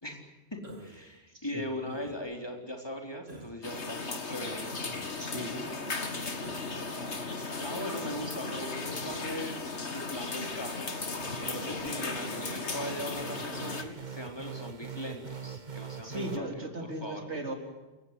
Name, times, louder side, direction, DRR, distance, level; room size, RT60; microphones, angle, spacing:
voice 1, 0.0-4.7 7.6-9.6 9.9-10.9 11.3-17.2, left 1 dB, 20° left, 2 dB, 4.2 m, -39 dB
Human voice, 0.6-1.1 1.8-2.4 3.3-3.6 4.8-5.2 6.4-6.8 7.6-7.9 9.0-9.3 10.4-10.7 11.8-12.0 13.1-13.4 14.4-14.7, right 1 dB, 65° right, 2.7 m, -48 dB
voice 2, 1.3-1.7 5.2-5.7 6.7-6.8 16.0-17.5, right 1 dB, 90° right, 3 dB, 4.4 m, -38 dB
sound 1, 3.6-13.8, left 3 dB, 85° left, 2.5 m, -36 dB
sound 2, 11.2-16.4, right 6 dB, 45° right, 1.5 m, -43 dB
28.5 x 16.0 x 9.8 m, 1.1 s
omnidirectional pair, 1.1 m